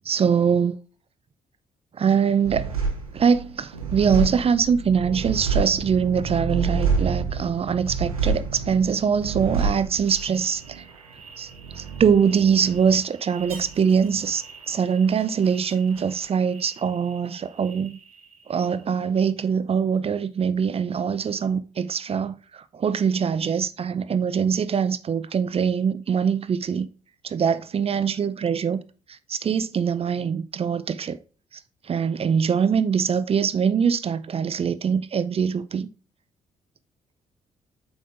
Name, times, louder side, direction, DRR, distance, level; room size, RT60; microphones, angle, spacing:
voice 1, 0.1-0.8 2.0-2.8 3.1-10.9 11.4-11.5 11.8-18.0 18.5-26.9 27.2-28.8 29.1-31.2 31.9-35.9, right 7 dB, 35° right, 0.5 m, -23 dB
sound 1, 2.4-17.3 17.6-18.4, right 5 dB, 85° right, 0.9 m, -29 dB
8.4 x 5.2 x 2.6 m
figure-of-eight pair, 40°, 18 cm